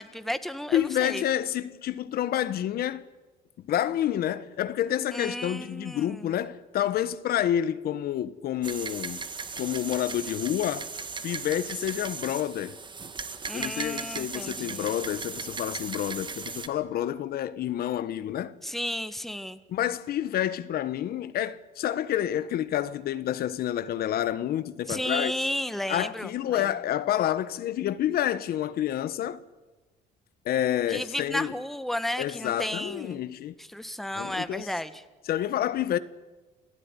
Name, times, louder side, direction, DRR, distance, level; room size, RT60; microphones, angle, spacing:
voice 1, 0.0-1.2 5.1-6.3 13.4-14.9 18.6-19.6 24.9-26.7 30.9-33.2 33.6-35.0, left 1 dB, ahead, 1.5 m, -33 dB
voice 2, 0.7-3.0 3.6-9.2 9.6-10.9 11.2-12.8 13.5-18.6 19.7-25.3 25.9-29.4 30.4-31.5 32.2-33.5 34.2-34.7 35.2-36.0, left 11 dB, 65° left, 1.3 m, -29 dB
sound 1, 8.6-16.7, right 5 dB, 30° right, 1.9 m, -37 dB
28.5 x 17.5 x 9.9 m
cardioid pair, 110°, 17 cm